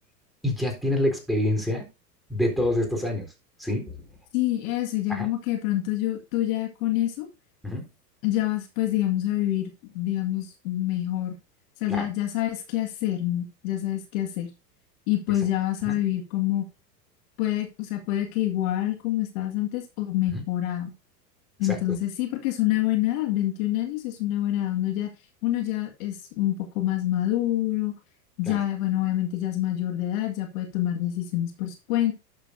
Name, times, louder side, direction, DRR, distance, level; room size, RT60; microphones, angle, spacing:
voice 1, 0.4-1.9 2.3-3.3 3.6-4.0 5.1-5.3 7.6-7.8 11.9-12.1 15.9-16.0 20.3-20.4 21.6-21.8 28.5-28.6, left 1 dB, ahead, 1 dB, 3.9 m, -26 dB
voice 2, 4.3-7.3 8.2-11.3 11.8-14.5 15.1-16.7 17.4-20.9 21.6-25.1 25.4-27.9 28.4-32.1, left 14 dB, 55° left, 4 dB, 2.1 m, -26 dB
12.0 x 7.3 x 2.7 m, 0.28 s
hypercardioid pair, 100°, 49 cm